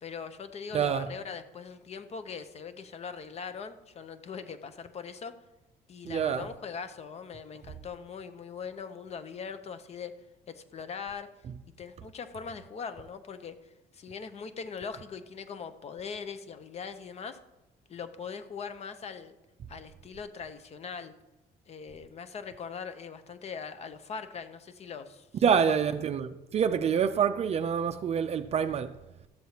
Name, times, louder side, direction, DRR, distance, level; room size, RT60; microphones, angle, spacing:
voice 1, 0.0-5.4 5.9-10.1 10.5-11.3 11.8-13.6 13.9-17.4 17.9-19.4 19.7-21.1 21.7-25.3 25.6-25.8, left 6 dB, 40° left, 0.7 m, -41 dB
voice 2, 0.7-1.1 6.0-6.5 25.4-28.9, right 7 dB, 40° right, 0.4 m, -26 dB
13.0 x 7.5 x 2.9 m
cardioid pair, 110°, 17 cm